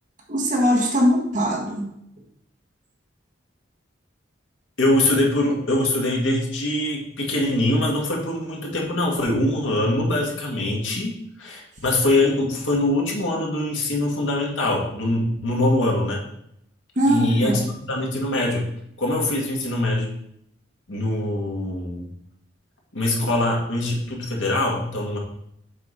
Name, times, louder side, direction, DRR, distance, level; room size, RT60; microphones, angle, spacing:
voice 1, 0.3-1.9 16.9-17.7, equal, 40° right, -2 dB, 1.6 m, -21 dB
voice 2, 4.8-16.2 17.1-18.7 19.0-20.1 20.9-22.0 22.9-25.2, left 1 dB, 85° left, -1 dB, 1.9 m, -23 dB
7.4 x 4.8 x 4.2 m, 0.75 s
head